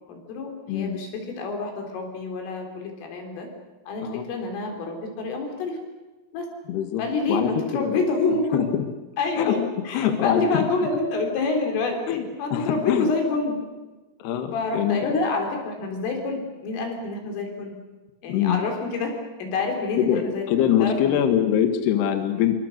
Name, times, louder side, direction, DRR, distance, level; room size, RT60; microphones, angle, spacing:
voice 1, 0.1-3.5 3.9-5.8 6.3-6.5 7.0-8.6 9.2-9.6 9.9-13.6 14.5-17.7 18.2-21.2, left 3 dB, 80° left, 3 dB, 6.4 m, -27 dB
voice 2, 0.7-1.0 4.0-4.3 6.7-8.0 8.5-8.8 9.4-9.6 9.9-10.7 12.1-13.1 14.2-15.2 18.3-18.6 20.0-22.5, left 10 dB, 65° left, 7 dB, 3.3 m, -24 dB
26.5 x 25.0 x 6.7 m, 1.2 s
omnidirectional pair, 5.7 m